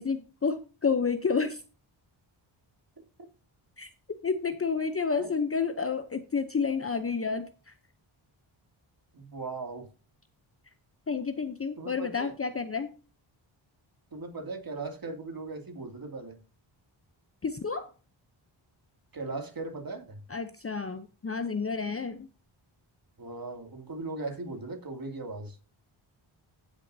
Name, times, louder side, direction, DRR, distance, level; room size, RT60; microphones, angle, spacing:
voice 1, 0.0-1.6 3.8-3.9 4.2-7.7 11.1-12.9 17.4-17.9 20.3-22.3, left 5 dB, 30° left, 0.7 m, -30 dB
voice 2, 9.1-9.9 11.8-12.3 14.1-16.4 19.1-20.2 23.2-25.6, right 3 dB, 45° right, 2.5 m, -38 dB
16.0 x 6.3 x 2.7 m
cardioid pair, 80°, 49 cm